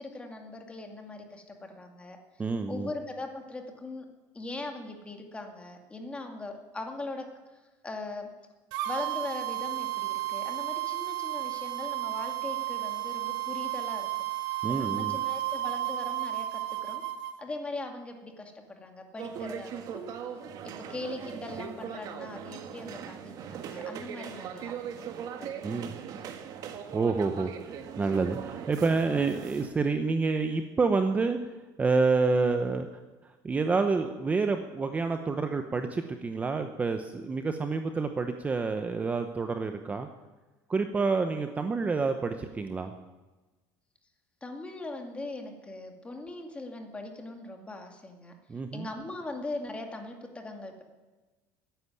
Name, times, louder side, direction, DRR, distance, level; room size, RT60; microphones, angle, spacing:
voice 1, 0.0-2.2 2.7-4.1 4.3-7.3 7.8-8.3 8.8-14.1 14.7-17.0 17.4-20.2 20.8-24.7 25.4-25.5 25.7-26.3 29.1-29.2 44.4-48.3 48.7-50.8, left 2 dB, 15° left, 4 dB, 2.2 m, -40 dB
voice 2, 2.4-2.9 14.6-15.2 25.6-26.0 26.9-31.4 31.8-32.9 33.2-40.1 40.7-42.9 48.5-48.9, right 4 dB, 20° right, 7 dB, 0.8 m, -28 dB
sound 1, 8.7-17.3, right 16 dB, 75° right, 1.1 m, -33 dB
sound 2, 19.1-29.7, right 8 dB, 50° right, 1.5 m, -40 dB
14.0 x 10.0 x 9.7 m, 1.2 s
cardioid pair, 140°, 8 cm